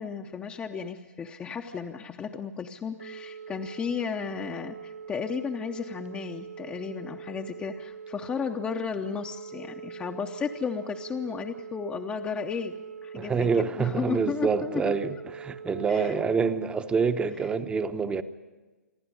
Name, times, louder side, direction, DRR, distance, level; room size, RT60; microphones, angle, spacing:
voice 1, 0.0-14.9 15.9-16.2, left 6 dB, 15° left, 3 dB, 0.8 m, -34 dB
Telephone, 2.9-16.2, right 6 dB, 75° right, 0.8 m, -43 dB
voice 2, 13.1-18.2, right 5 dB, 10° right, 11 dB, 0.9 m, -27 dB
27.5 x 11.0 x 9.9 m, 1.2 s
hypercardioid pair, 130°, 9 cm